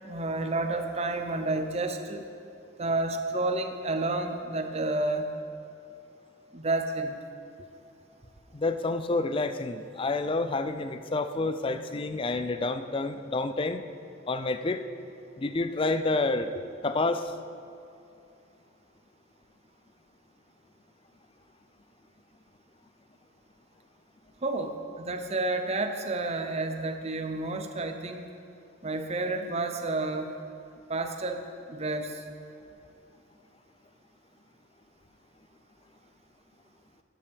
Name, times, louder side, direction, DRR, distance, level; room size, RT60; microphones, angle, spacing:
voice 1, 0.0-2.2 2.8-5.3 6.5-7.2 24.4-28.3 28.8-30.3 30.9-32.2, right 2 dB, 30° right, 5 dB, 0.7 m, -30 dB
voice 2, 8.5-13.8 14.3-14.8 15.4-17.3, left 3 dB, 25° left, 10 dB, 0.4 m, -29 dB
12.5 x 11.5 x 3.6 m, 2.7 s
head